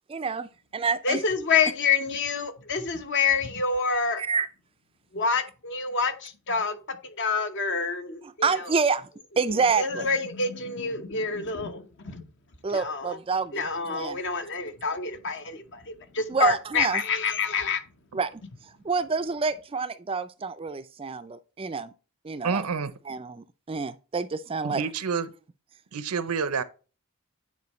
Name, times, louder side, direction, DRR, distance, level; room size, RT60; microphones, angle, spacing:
voice 1, 0.1-1.2 4.2-4.5 8.2-9.1 9.4-10.1 12.6-14.2 16.3-17.0 18.1-21.9 22.2-22.6 23.1-24.8, right 5 dB, 25° right, 0.4 m, -28 dB
voice 2, 1.0-4.2 5.1-6.8 7.0-8.5 9.8-12.2 12.7-13.1 13.5-17.8, left 5 dB, 55° left, 0.9 m, -27 dB
voice 3, 22.4-22.9 24.6-25.3 25.9-26.6, right 5 dB, 85° right, 0.7 m, -28 dB
9.5 x 4.5 x 3.1 m
head